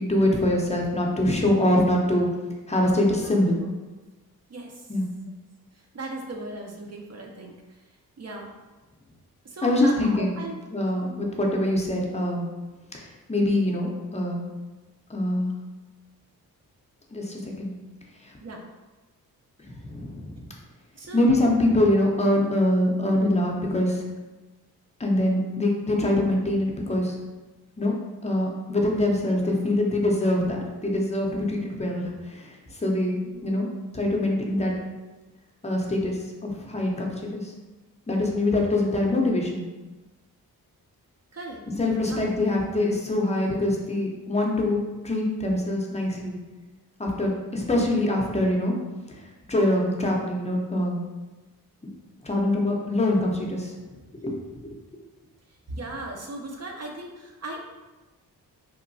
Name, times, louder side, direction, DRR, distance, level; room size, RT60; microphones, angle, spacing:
voice 1, 0.0-2.3 2.7-3.6 4.9-5.1 9.6-10.4 10.7-12.4 12.9-14.4 15.1-15.5 17.1-17.7 19.8-20.4 21.1-24.0 25.0-27.2 27.8-27.9 28.2-33.7 33.9-34.7 35.6-37.5 38.1-39.7 41.7-46.4 47.0-48.7 49.5-51.0 52.2-53.7 54.2-54.3 54.6-54.7, left 1 dB, 15° left, -1 dB, 0.6 m, -24 dB
voice 2, 5.9-7.5 8.2-8.5 9.5-10.6 18.4-18.6 21.0-21.3 33.3-33.6 41.3-42.2 55.7-57.7, right 2 dB, 40° right, 0 dB, 0.6 m, -37 dB
2.9 x 2.1 x 2.6 m, 1.2 s
cardioid pair, 50°, 39 cm